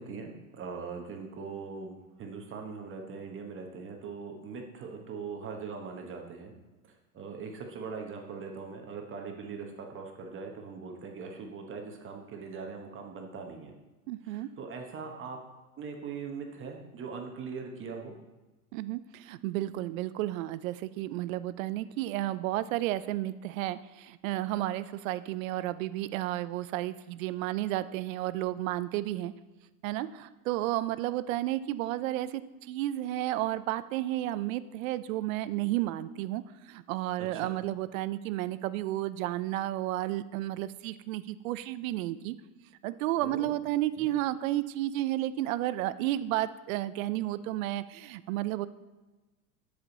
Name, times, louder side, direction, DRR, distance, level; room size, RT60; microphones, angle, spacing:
voice 1, 0.0-6.5 7.1-13.7 14.2-15.4 15.8-18.2 37.2-37.6 43.2-43.6 44.0-44.1, right 5 dB, 25° right, 3 dB, 1.1 m, -41 dB
voice 2, 14.1-14.5 18.7-29.3 29.8-32.4 32.7-42.4 42.8-48.7, right 15 dB, 60° right, 15 dB, 0.5 m, -32 dB
12.0 x 5.1 x 4.0 m, 1.1 s
hypercardioid pair, 115°, 46 cm